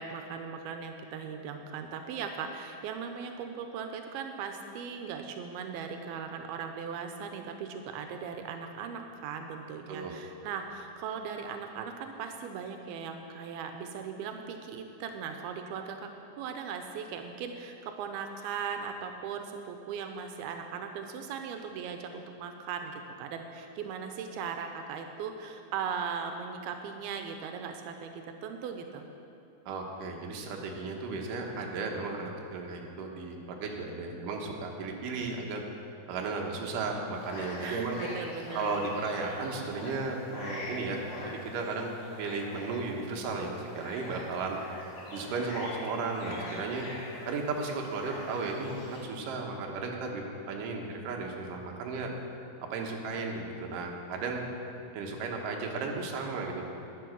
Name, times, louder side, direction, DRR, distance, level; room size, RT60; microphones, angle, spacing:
voice 1, 0.0-16.1 16.4-29.0 37.6-38.8, right 6 dB, 90° right, 5 dB, 2.6 m, -38 dB
voice 2, 9.9-10.2 29.7-35.6 36.1-38.0 38.5-44.6 45.1-46.9 47.3-52.1 52.7-54.4 54.9-56.7, right 3 dB, 70° right, 0 dB, 2.7 m, -35 dB
sound 1, 37.1-49.0, left 1 dB, 85° left, 4.5 m, -44 dB
11.5 x 9.7 x 6.1 m, 2.9 s
omnidirectional pair, 4.3 m